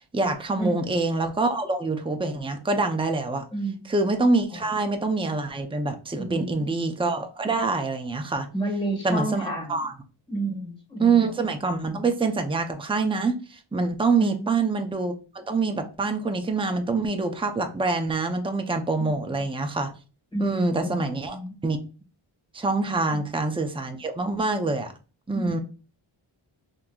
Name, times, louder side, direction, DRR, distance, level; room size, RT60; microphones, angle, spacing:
voice 1, 0.0-3.4 3.9-8.5 9.0-9.9 11.0-19.9 20.4-21.4 21.6-21.8 22.5-24.9 25.3-25.6, right 3 dB, 10° right, 6 dB, 0.5 m, -25 dB
voice 2, 0.6-0.9 3.5-3.8 6.2-6.7 8.5-9.9 10.3-11.3 14.2-14.5 19.0-19.1 20.3-21.5 25.3-25.4, right 2 dB, 10° left, 0 dB, 1.5 m, -30 dB
3.7 x 2.9 x 2.3 m, 0.34 s
wide cardioid pair, 60°, 50 cm